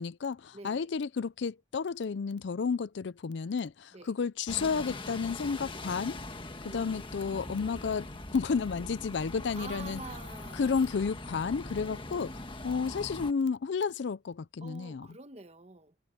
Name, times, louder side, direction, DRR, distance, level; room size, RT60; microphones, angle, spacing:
voice 1, 0.0-6.2 6.7-10.0 10.6-12.3 12.6-15.1, left 5 dB, 65° left, 0.4 m, -32 dB
voice 2, 0.5-0.9 3.9-4.1 6.7-7.0 9.5-10.9 14.6-16.0, right 3 dB, 35° right, 1.3 m, -47 dB
Bus, 4.5-13.3, left 2 dB, 25° left, 1.6 m, -42 dB
sound 1, 7.2-12.2, equal, 10° left, 1.6 m, -51 dB
head